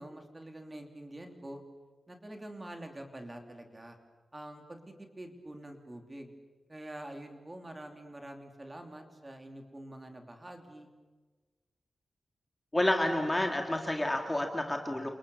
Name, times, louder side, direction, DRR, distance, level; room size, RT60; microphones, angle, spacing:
voice 1, 0.0-1.6 2.1-4.0 4.3-6.3 6.7-10.9, right 1 dB, 15° right, 4 dB, 3.1 m, -46 dB
voice 2, 12.7-15.1, left 1 dB, 10° left, 3 dB, 2.0 m, -29 dB
30.0 x 27.5 x 7.1 m, 1.3 s
wide cardioid pair, 180°, 0 cm